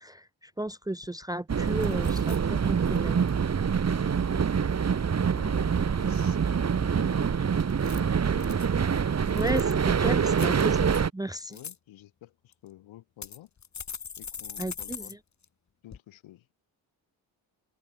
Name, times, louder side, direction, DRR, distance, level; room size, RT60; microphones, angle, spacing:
voice 1, 0.0-3.2 9.3-11.6 14.6-15.2, right 1 dB, 10° right, 0.8 m, -34 dB
sound 1, 0.7-0.8 1.0-1.4 1.8-2.4 2.9-3.2 7.7-8.7 9.2-9.8 10.3-11.0 11.4-11.8 12.5-12.6 13.2-15.1 15.4-15.5 15.9-16.0, left 6 dB, 35° left, 1.9 m, -42 dB
sound 2, 1.5-11.1, right 6 dB, 35° right, 1.4 m, -25 dB
voice 2, 3.8-4.5 5.3-8.6 10.9-11.1 11.5-13.5 14.2-15.2 15.8-16.5, left 14 dB, 80° left, 6.4 m, -51 dB
open air
supercardioid pair, 65°, 47 cm